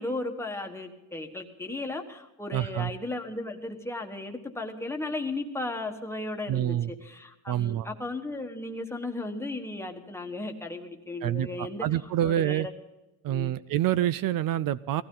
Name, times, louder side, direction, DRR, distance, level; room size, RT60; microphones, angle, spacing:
voice 1, 0.0-12.7 13.3-13.6, left 2 dB, 5° left, 3 dB, 1.3 m, -35 dB
voice 2, 2.5-2.9 6.5-6.9 7.5-7.9 11.2-12.7 13.2-15.0, right 12 dB, 60° right, 17 dB, 0.5 m, -27 dB
18.5 x 15.5 x 3.8 m, 1.0 s
cardioid pair, 180°, 38 cm